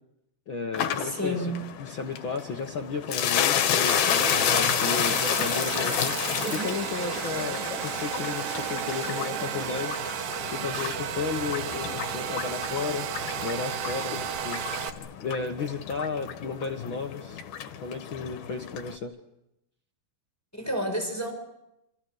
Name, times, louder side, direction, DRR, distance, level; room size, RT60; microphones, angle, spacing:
voice 1, 0.5-1.5 1.8-6.2 6.5-10.0 10.5-13.1 13.4-14.6 15.2-17.4 17.8-19.1, left 5 dB, 55° left, 4 dB, 1.4 m, -33 dB
sound 1, 0.7-19.0, left 9 dB, 85° left, 3.5 m, -31 dB
voice 2, 1.0-1.5 20.5-21.3, equal, 5° left, 4 dB, 5.8 m, -30 dB
Domestic sounds home sounds, 3.9-14.9, right 8 dB, 75° right, 3.3 m, -33 dB
sound 2, 4.0-9.8, right 6 dB, 60° right, 3.1 m, -39 dB
29.0 x 27.5 x 6.6 m, 0.87 s
omnidirectional pair, 4.2 m